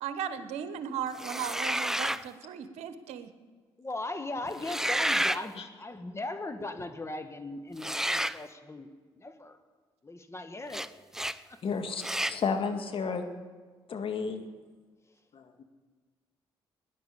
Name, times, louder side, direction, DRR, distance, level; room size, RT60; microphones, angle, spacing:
voice 1, 0.0-3.3, right 8 dB, 75° right, 11 dB, 1.1 m, -36 dB
sound 1, 1.2-2.3 4.5-5.4 7.8-8.4 10.7-10.9 11.1-11.4 12.0-12.4, right 1 dB, 5° right, 0.6 m, -30 dB
voice 2, 3.8-8.9 9.2-9.6 10.0-10.9 11.5-11.6, left 2 dB, 25° left, 8 dB, 1.8 m, -38 dB
voice 3, 11.6-12.0 12.3-13.2 13.9-14.4 15.3-15.6, left 5 dB, 50° left, 5 dB, 1.9 m, -32 dB
17.0 x 10.5 x 6.8 m, 1.4 s
hypercardioid pair, 50°, 11 cm